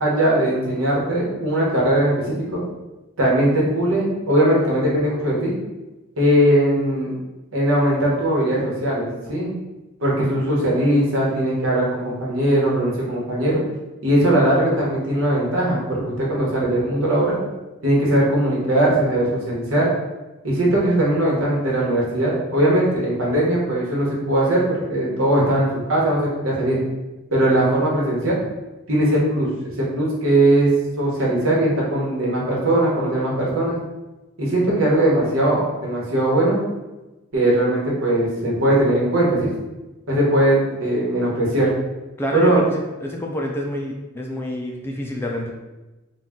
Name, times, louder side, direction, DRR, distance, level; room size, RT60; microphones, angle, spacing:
voice 1, 0.0-2.6 3.2-5.5 6.2-7.1 7.5-9.5 10.0-13.6 14.0-17.4 17.8-19.9 20.4-26.8 27.3-28.3 28.9-29.5 29.8-30.7 31.0-33.8 34.4-36.6 37.3-39.5 40.1-41.7 42.3-42.6, right 1 dB, 80° right, -5 dB, 1.2 m, -20 dB
voice 2, 42.2-45.5, left 1 dB, 10° left, 0 dB, 0.4 m, -27 dB
3.8 x 2.3 x 3.6 m, 1.1 s
head